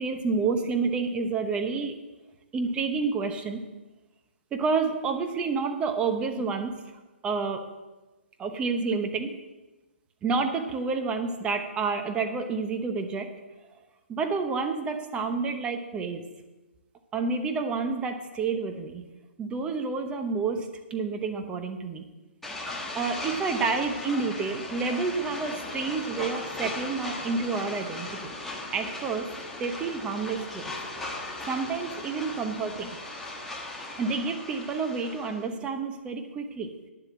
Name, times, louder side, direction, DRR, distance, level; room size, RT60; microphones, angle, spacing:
voice 1, 0.0-1.9 2.5-3.6 4.5-6.8 7.2-7.7 8.4-9.4 10.2-13.3 14.1-16.3 17.1-19.1 19.4-22.1 22.9-28.3 28.7-30.7 31.5-33.0 34.0-36.7, right 4 dB, 15° right, 6 dB, 0.9 m, -29 dB
sound 1, 22.4-35.5, left 2 dB, 5° left, 1.3 m, -38 dB
9.9 x 7.4 x 7.4 m, 1.1 s
hypercardioid pair, 150°, 7 cm